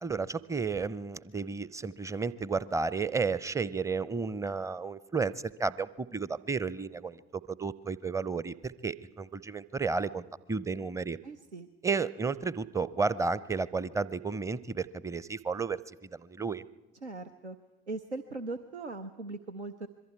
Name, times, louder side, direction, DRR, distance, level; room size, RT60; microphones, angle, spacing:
voice 1, 0.0-11.2 11.8-15.8 16.1-16.6, right 4 dB, 10° right, 19 dB, 0.6 m, -32 dB
voice 2, 11.2-11.7 17.0-17.6 17.9-19.9, right 3 dB, 90° right, 7 dB, 0.6 m, -39 dB
26.0 x 22.5 x 4.7 m, 1.1 s
figure-of-eight pair, 55°, 33 cm